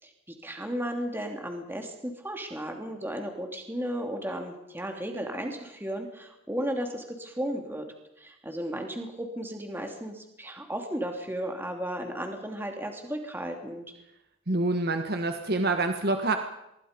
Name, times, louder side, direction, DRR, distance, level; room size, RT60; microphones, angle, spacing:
voice 1, 0.0-7.9 8.2-13.8, equal, 10° right, 3 dB, 2.8 m, -34 dB
voice 2, 14.5-16.4, right 2 dB, 50° right, 6 dB, 1.5 m, -26 dB
25.0 x 22.5 x 5.3 m, 0.85 s
head